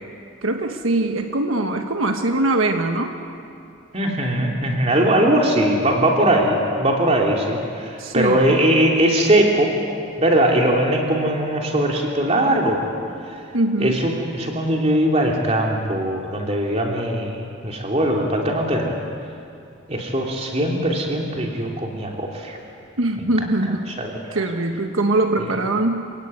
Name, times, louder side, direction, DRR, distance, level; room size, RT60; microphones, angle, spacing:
voice 1, 0.4-3.1 8.0-8.5 13.5-14.0 23.0-23.9 24.3-26.1, right 2 dB, 80° right, 5 dB, 1.4 m, -22 dB
voice 2, 3.9-9.7 10.2-12.8 13.8-17.4 17.6-18.9 19.9-22.6 23.9-24.4, right 1 dB, 30° right, 0 dB, 3.2 m, -20 dB
27.5 x 17.0 x 9.6 m, 2.5 s
head